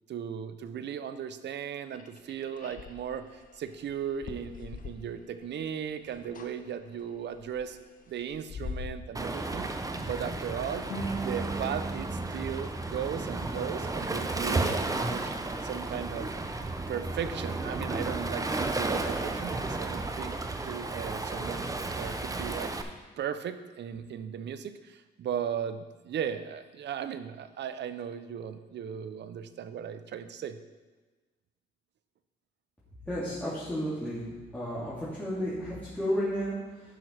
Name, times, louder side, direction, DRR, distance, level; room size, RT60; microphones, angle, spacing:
voice 1, 0.1-7.8 8.1-9.7 10.0-10.9 11.2-15.3 15.6-16.3 16.9-21.7 22.0-22.9 23.2-30.6, right 8 dB, 60° right, 11 dB, 0.7 m, -37 dB
sound 1, 1.9-5.6 5.8-6.5 6.9-9.0, left 5 dB, 45° left, 1.0 m, -43 dB
Waves surf, 9.1-22.8, right 2 dB, 15° right, 0.8 m, -33 dB
sound 2, 10.9-14.0, right 2 dB, 90° left, 2.7 m, -39 dB
voice 2, 33.1-34.2 34.5-36.9, equal, 5° left, -11 dB, 2.8 m, -32 dB
11.5 x 5.6 x 4.6 m, 1.2 s
cardioid pair, 90°, 20 cm